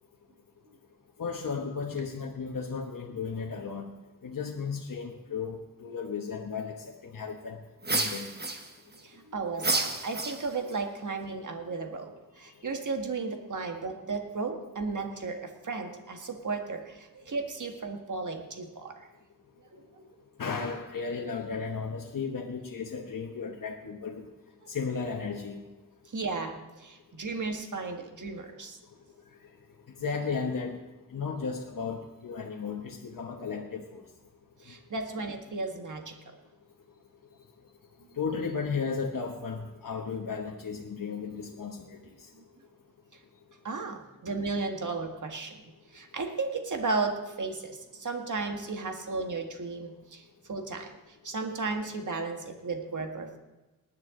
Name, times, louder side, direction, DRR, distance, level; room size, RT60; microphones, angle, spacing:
voice 1, 1.2-3.9 4.2-7.6 7.9-8.3 20.4-24.3 24.7-25.6 30.0-30.8 31.1-34.0 38.2-42.0, left 5 dB, 85° left, 1 dB, 1.1 m, -34 dB
sound 1, 7.8-9.0 9.6-10.8, right 2 dB, 30° right, 1.2 m, -30 dB
voice 2, 9.0-19.1 19.7-20.0 26.1-28.8 34.6-36.3 42.3-42.4 43.6-45.6 45.9-50.2 50.5-50.9 51.2-53.4, right 4 dB, 65° right, 4 dB, 1.7 m, -34 dB
19.0 x 10.5 x 3.8 m, 1.1 s
wide cardioid pair, 100°, 32 cm